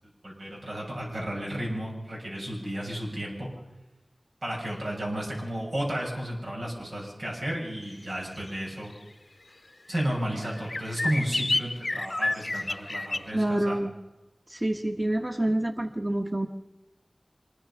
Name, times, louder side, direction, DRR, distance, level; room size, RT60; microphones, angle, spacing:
voice 1, 0.2-3.5 4.4-8.9 9.9-13.7, right 1 dB, 90° right, -3 dB, 6.8 m, -33 dB
sound 1, 8.5-8.6 10.0-10.1 10.4-13.3, left 2 dB, 55° left, 0.6 m, -30 dB
voice 2, 13.3-13.9 14.5-16.5, right 1 dB, 25° right, 4 dB, 1.3 m, -27 dB
25.0 x 21.0 x 5.8 m, 1.1 s
wide cardioid pair, 45°, 0 cm